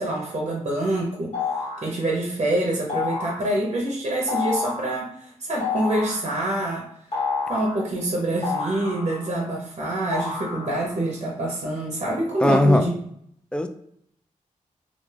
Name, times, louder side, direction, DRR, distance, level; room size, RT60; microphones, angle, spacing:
voice 1, 0.0-1.3 1.8-6.8 7.5-13.0, right 1 dB, 50° right, -2 dB, 0.7 m, -26 dB
sound 1, 1.3-1.9 2.9-3.4 4.3-4.9 5.6-6.2 7.1-7.8 8.4-9.4 10.1-10.9, left 4 dB, 55° left, 1.2 m, -29 dB
voice 2, 12.4-12.9 13.5-13.7, left 1 dB, 5° left, 7 dB, 0.3 m, -18 dB
2.4 x 2.2 x 3.2 m, 0.70 s
cardioid pair, 60°, 13 cm